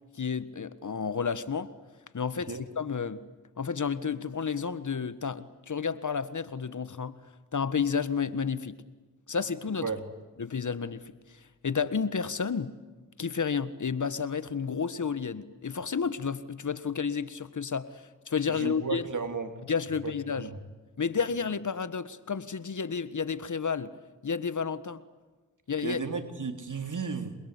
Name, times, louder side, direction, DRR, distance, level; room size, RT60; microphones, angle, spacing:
voice 1, 0.2-1.7 2.1-3.2 3.6-7.2 7.5-8.8 9.3-9.9 10.4-11.0 11.6-12.7 13.2-19.1 19.7-20.5 21.0-23.9 24.2-25.0 25.7-26.0, left 6 dB, 60° left, 15 dB, 1.6 m, -31 dB
voice 2, 2.3-2.6 9.8-10.0 18.5-19.5 20.0-20.6 25.8-27.4, right 5 dB, 65° right, 7 dB, 3.5 m, -34 dB
28.0 x 22.5 x 8.4 m, 1.3 s
cardioid pair, 50°, 34 cm